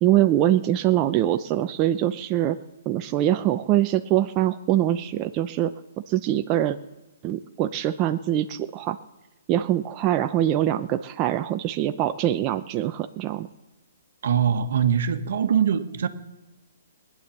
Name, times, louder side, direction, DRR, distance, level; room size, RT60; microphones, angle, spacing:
voice 1, 0.0-2.6 2.9-5.7 6.1-6.8 7.2-9.0 9.5-13.5, right 12 dB, 30° right, 7 dB, 0.6 m, -23 dB
voice 2, 14.2-16.1, right 8 dB, 65° right, 9 dB, 1.4 m, -22 dB
19.0 x 9.8 x 7.2 m, 1.1 s
hypercardioid pair, 135°, 0 cm